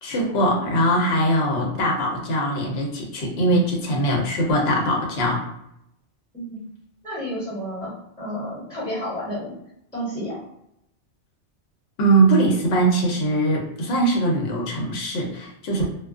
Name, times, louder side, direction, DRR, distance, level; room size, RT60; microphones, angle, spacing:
voice 1, 0.0-5.5 12.0-15.9, right 1 dB, 65° left, -1 dB, 0.9 m, -21 dB
voice 2, 6.3-6.7 7.0-7.9 8.2-9.5 9.9-10.4, equal, 5° left, -10 dB, 1.2 m, -31 dB
2.3 x 2.3 x 2.4 m, 0.80 s
omnidirectional pair, 1.2 m